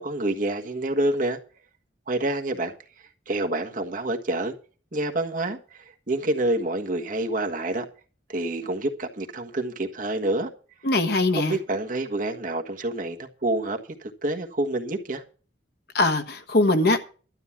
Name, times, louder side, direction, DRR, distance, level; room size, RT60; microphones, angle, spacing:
voice 1, 0.0-1.4 2.1-2.7 3.3-4.5 4.9-7.8 8.3-10.5 11.4-15.2, right 2 dB, 50° right, 1.5 m, -27 dB
voice 2, 10.8-11.5 15.9-17.0, left 2 dB, 60° left, 1.4 m, -21 dB
12.5 x 8.9 x 6.0 m
head